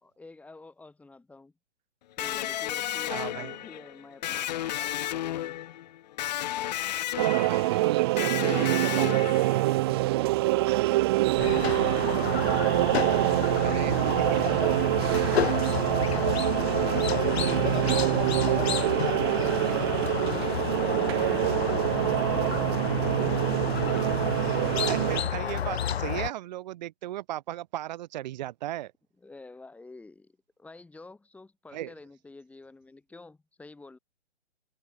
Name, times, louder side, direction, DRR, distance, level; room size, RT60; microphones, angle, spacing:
voice 1, 0.0-1.5 2.2-5.6 9.8-12.4 13.9-16.5 19.3-21.3 21.7-23.8 29.2-34.0, left 3 dB, 5° left, 2.9 m, -49 dB
Electric guitar, 2.2-9.9, left 13 dB, 35° left, 1.1 m, -33 dB
voice 2, 3.1-3.6 7.2-9.8 13.6-14.9 17.8-18.2 24.8-28.9 31.7-31.9, right 14 dB, 40° right, 3.3 m, -36 dB
sound 1, 7.2-25.2, right 19 dB, 20° right, 0.7 m, -25 dB
Squeak, 11.4-26.3, left 9 dB, 65° left, 0.6 m, -31 dB
figure-of-eight pair, 130°, 35 cm